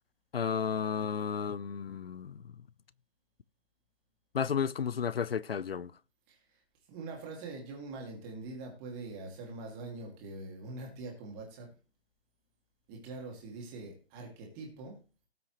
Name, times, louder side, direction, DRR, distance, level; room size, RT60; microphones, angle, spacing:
voice 1, 0.3-2.4 4.3-5.9, left 7 dB, 60° left, 0.6 m, -32 dB
voice 2, 6.3-6.6 6.9-11.7 12.9-15.0, right 3 dB, 15° right, 2.3 m, -43 dB
18.0 x 6.1 x 3.0 m
figure-of-eight pair, 150°, 34 cm